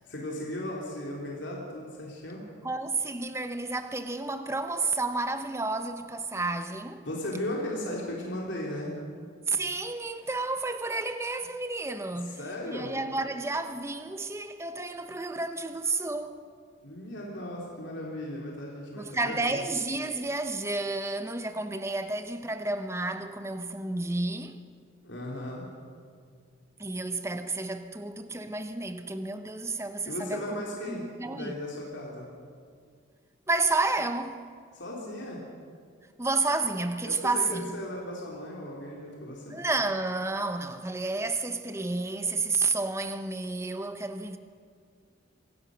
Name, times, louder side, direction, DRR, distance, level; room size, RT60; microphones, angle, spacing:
voice 1, 0.1-2.5 7.0-8.9 12.2-12.9 16.8-19.7 25.0-25.7 30.1-32.3 34.7-35.4 37.0-39.6, left 1 dB, 65° left, 3.4 m, -36 dB
voice 2, 2.6-7.1 9.5-12.4 12.7-16.4 19.0-24.6 26.8-30.6 30.9-31.5 33.5-34.4 36.2-37.8 39.5-44.4, right 3 dB, 15° right, 0.8 m, -31 dB
25.5 x 16.0 x 6.3 m
head